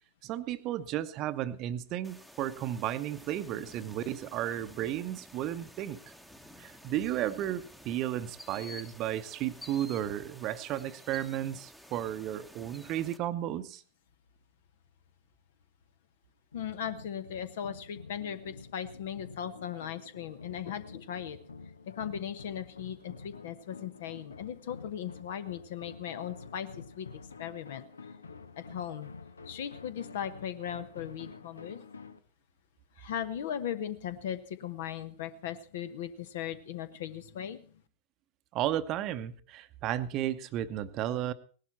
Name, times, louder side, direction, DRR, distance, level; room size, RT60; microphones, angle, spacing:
voice 1, 0.2-6.0 6.6-13.8 38.5-41.3, right 12 dB, 35° right, 13 dB, 0.8 m, -33 dB
sound 1, 2.0-13.2, left 1 dB, 5° left, 1.1 m, -52 dB
sound 2, 16.5-32.2, left 4 dB, 75° left, 0.7 m, -48 dB
voice 2, 16.5-21.4 22.0-27.8 28.6-29.1 29.5-31.8 33.0-37.7, left 9 dB, 55° left, 13 dB, 1.1 m, -38 dB
18.0 x 11.5 x 4.3 m, 0.41 s
figure-of-eight pair, 90°, 0 cm